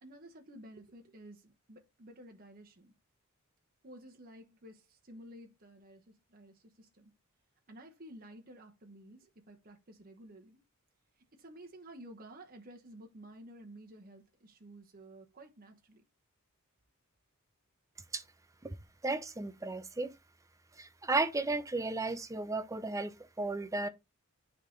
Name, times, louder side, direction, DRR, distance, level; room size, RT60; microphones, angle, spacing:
voice 1, 0.0-2.9 3.8-7.1 7.7-10.6 11.3-16.0, right 1 dB, 40° right, 1.1 m, -53 dB
voice 2, 19.0-20.1 20.8-23.9, right 3 dB, 15° right, 0.6 m, -34 dB
9.2 x 3.6 x 3.8 m
head